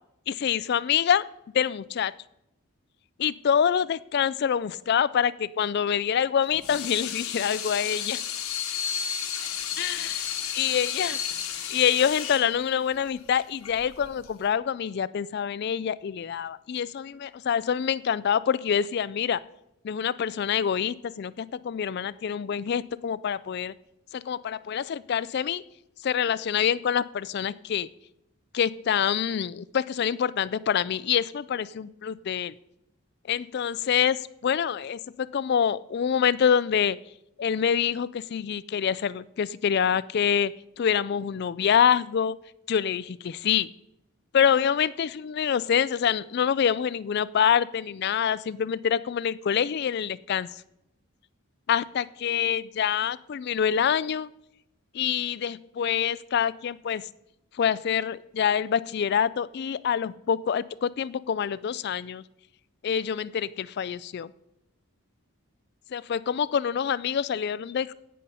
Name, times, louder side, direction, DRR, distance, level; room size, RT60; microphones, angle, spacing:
voice 1, 0.3-1.2 1.5-2.1 3.2-8.2 9.8-10.3 10.5-11.2 11.7-19.4 19.8-23.7 24.1-25.6 26.0-27.9 28.5-32.5 33.3-37.0 37.4-40.5 40.8-42.4 42.7-43.7 44.3-50.5 51.7-54.3 54.9-57.0 57.6-62.2 62.8-64.3 65.9-67.9, left 8 dB, 50° left, 19 dB, 0.3 m, -26 dB
Water tap faucet / Sink (filling or washing), 6.4-14.5, left 8 dB, 80° left, 1.2 m, -33 dB
17.0 x 5.6 x 5.4 m, 0.83 s
head